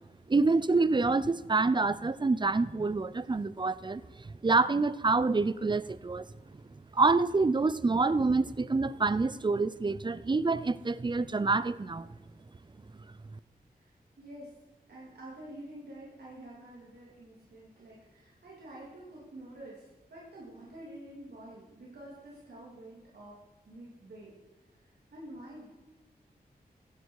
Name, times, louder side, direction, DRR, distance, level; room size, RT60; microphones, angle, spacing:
voice 1, 0.3-4.0 4.4-6.3 6.9-12.1, right 3 dB, 30° right, 17 dB, 0.5 m, -27 dB
voice 2, 13.7-14.6 14.9-23.4 23.7-24.4 24.7-25.7, right 1 dB, 80° right, -6 dB, 3.0 m, -48 dB
15.0 x 11.0 x 4.7 m, 1.1 s
wide cardioid pair, 75°, 17 cm